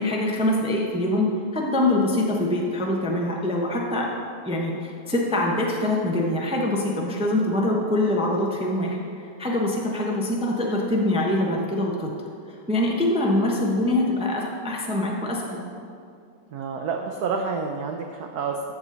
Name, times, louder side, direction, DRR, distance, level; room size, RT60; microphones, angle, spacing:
voice 1, 0.0-4.1 4.4-12.1 12.7-15.6, left 1 dB, 10° right, -2 dB, 0.4 m, -24 dB
voice 2, 16.5-18.7, right 5 dB, 75° right, 3 dB, 0.9 m, -29 dB
13.0 x 7.0 x 4.0 m, 2.5 s
omnidirectional pair, 2.3 m